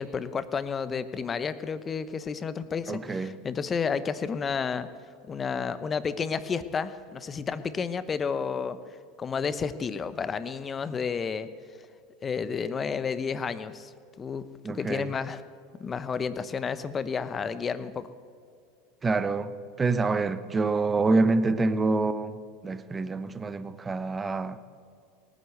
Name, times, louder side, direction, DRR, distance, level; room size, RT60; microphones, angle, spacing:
voice 1, 0.0-4.9 5.3-8.8 9.2-11.5 12.2-13.9 14.2-15.4 15.8-18.1, left 6 dB, 30° left, 0.9 m, -31 dB
voice 2, 2.9-3.3 14.6-15.1 19.0-22.4 22.6-24.6, right 3 dB, 20° right, 0.9 m, -26 dB
18.5 x 9.4 x 7.8 m
hypercardioid pair, 95°, 0 cm